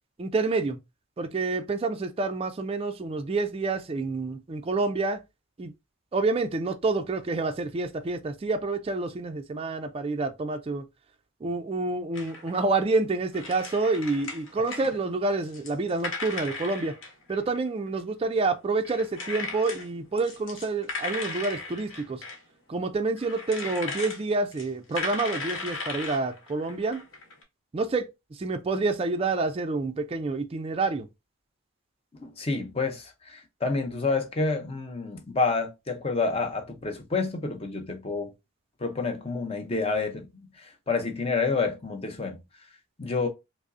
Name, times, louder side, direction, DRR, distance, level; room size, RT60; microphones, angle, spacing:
voice 1, 0.2-0.8 1.2-5.2 5.6-5.7 6.1-10.8 11.4-16.9 17.3-22.2 22.7-27.0 27.7-31.1, right 3 dB, 25° right, 0.3 m, -28 dB
sound 1, 12.1-12.6 13.3-14.9 15.3-18.0 18.8-19.9 20.2-22.4 23.2-24.2 24.5-27.4, left 3 dB, 65° left, 1.0 m, -36 dB
voice 2, 32.2-38.3 38.8-42.4 43.0-43.3, left 4 dB, 30° left, 0.6 m, -29 dB
4.9 x 2.0 x 2.5 m
head